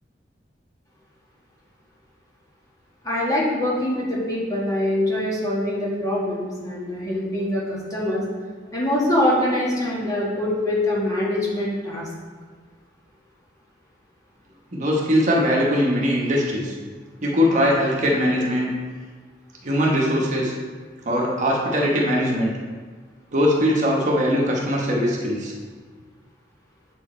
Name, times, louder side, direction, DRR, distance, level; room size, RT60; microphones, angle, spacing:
voice 1, 3.0-8.2 8.7-12.1, left 1 dB, 20° left, -6 dB, 1.9 m, -24 dB
voice 2, 14.7-16.7 17.2-18.7 19.6-20.5 21.0-22.5 23.3-25.5, equal, 45° right, -2 dB, 1.1 m, -21 dB
7.8 x 4.7 x 4.3 m, 1.5 s
head